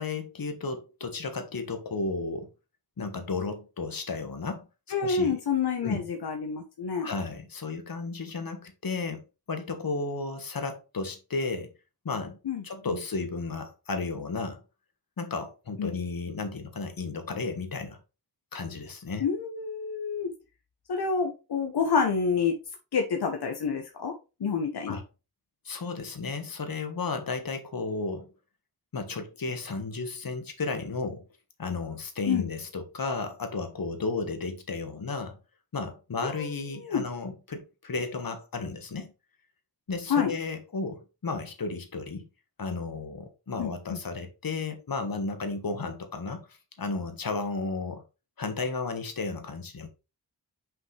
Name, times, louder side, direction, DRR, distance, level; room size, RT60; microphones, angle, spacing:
voice 1, 0.0-2.5 3.0-4.7 5.0-5.4 5.8-6.0 7.0-11.7 12.0-12.4 12.6-14.6 15.2-18.0 18.5-19.2 24.9-25.0 25.6-28.3 28.9-31.2 31.6-35.4 35.7-39.1 39.9-42.3 42.6-46.4 46.8-48.0 48.4-49.9, left 3 dB, 65° left, 1.6 m, -33 dB
voice 2, 4.9-7.1 12.4-13.0 15.8-15.9 19.2-20.3 20.9-22.5 22.9-24.1 24.4-25.0 32.3-32.4 36.2-36.5 36.8-37.0 40.1-40.3 43.6-44.0, left 6 dB, 85° left, 1.1 m, -28 dB
6.1 x 5.3 x 3.3 m
wide cardioid pair, 75°, 38 cm